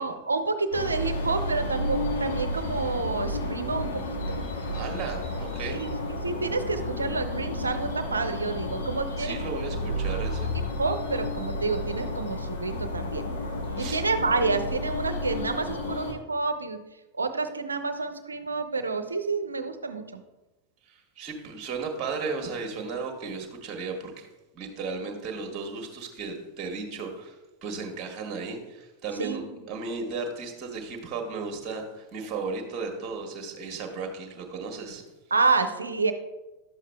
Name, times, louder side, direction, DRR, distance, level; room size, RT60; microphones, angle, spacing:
voice 1, 0.0-4.0 4.3-4.4 5.7-5.9 6.2-9.6 10.8-13.2 13.8-16.8 17.1-20.2 29.2-29.4 35.3-36.1, right 4 dB, 75° right, 8 dB, 0.6 m, -29 dB
sound 1, 0.7-16.1, left 1 dB, 65° left, 1.1 m, -31 dB
voice 2, 4.7-5.8 9.2-10.5 13.8-14.0 20.9-24.3 24.5-27.3 27.6-35.0, right 4 dB, 30° right, 2 dB, 1.4 m, -35 dB
11.5 x 7.3 x 2.2 m, 1.1 s
figure-of-eight pair, 90°, 0 cm